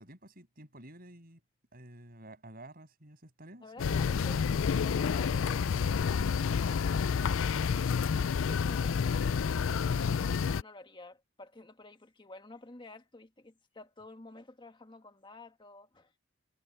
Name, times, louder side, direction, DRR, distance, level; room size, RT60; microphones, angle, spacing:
voice 1, 0.0-1.4 1.7-4.2, right 1 dB, 50° right, 7.9 m, -51 dB
voice 2, 3.6-8.1 8.4-9.2 9.6-16.2, left 2 dB, 25° left, 1.6 m, -51 dB
sound 1, 3.8-10.6, left 6 dB, 85° left, 0.4 m, -29 dB
sound 2, 9.7-11.2, right 2 dB, 65° right, 5.5 m, -63 dB
head